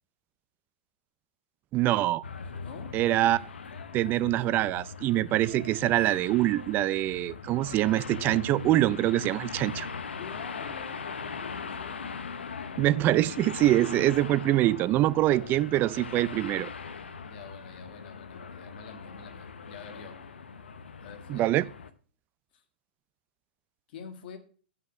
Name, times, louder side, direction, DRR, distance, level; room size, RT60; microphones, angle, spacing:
voice 1, 1.7-2.2 2.9-3.4 3.9-9.9 12.8-16.7 21.3-21.6, right 15 dB, 35° right, 0.4 m, -24 dB
sound 1, 2.2-21.9, left 5 dB, 90° left, 0.8 m, -40 dB
voice 2, 2.6-3.0 10.2-12.1 15.1-15.8 17.2-20.2 21.0-21.7 22.5-22.6 23.9-24.4, left 5 dB, 60° left, 1.6 m, -47 dB
7.9 x 5.6 x 6.0 m
hypercardioid pair, 120°, 6 cm